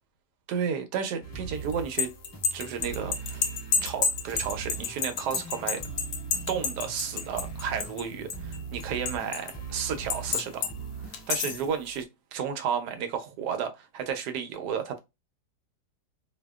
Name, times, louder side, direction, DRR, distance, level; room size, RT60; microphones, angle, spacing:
voice 1, 0.5-2.1 2.5-3.4 3.8-5.8 6.5-10.7 11.3-15.0, right 7 dB, 75° right, 1.1 m, -32 dB
sound 1, 1.2-11.7, right 4 dB, 10° left, 1.0 m, -40 dB
sound 2, 1.7-8.0 8.3-9.5 10.1-10.7 11.1-11.7, left 6 dB, 70° left, 1.0 m, -29 dB
2.7 x 2.3 x 2.2 m
omnidirectional pair, 1.8 m